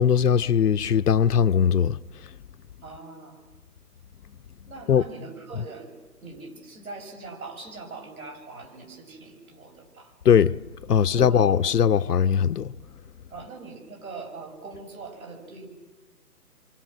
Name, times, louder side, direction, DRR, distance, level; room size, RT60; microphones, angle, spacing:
voice 1, 0.0-2.0 4.9-5.1 5.5-5.7 10.2-10.6 10.9-12.7, left 7 dB, 80° left, 0.8 m, -20 dB
voice 2, 2.8-3.5 4.7-5.9 6.2-10.2 10.9-11.6 13.3-15.7, right 4 dB, 65° right, 6.8 m, -42 dB
28.5 x 25.5 x 6.3 m
hypercardioid pair, 160°, 46 cm